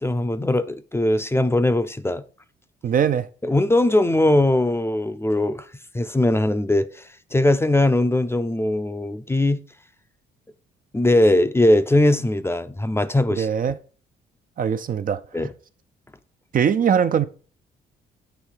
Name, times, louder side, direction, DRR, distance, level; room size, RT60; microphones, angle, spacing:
voice 1, 0.0-2.2 3.4-5.7 5.9-9.6 10.9-13.5 15.3-15.5, left 1 dB, 10° left, 0.5 m, -20 dB
voice 2, 2.8-3.3 13.4-13.8 14.6-15.2 16.5-17.3, right 8 dB, 45° right, 0.5 m, -21 dB
8.2 x 3.2 x 4.6 m
cardioid pair, 90°, 20 cm